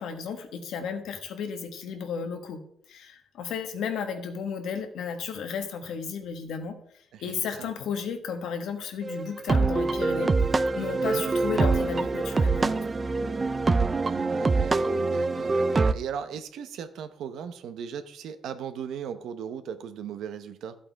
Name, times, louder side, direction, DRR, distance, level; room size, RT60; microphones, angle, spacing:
voice 1, 0.0-2.6 2.9-6.8 7.2-10.3 10.7-13.0, left 6 dB, 80° left, 6 dB, 1.6 m, -33 dB
voice 2, 7.1-7.7 11.0-11.2 14.0-20.8, right 8 dB, 80° right, 10 dB, 1.0 m, -37 dB
sound 1, 9.0-15.9, right 3 dB, 25° right, 0.5 m, -24 dB
14.0 x 8.3 x 3.6 m, 0.67 s
cardioid pair, 145°, 0 cm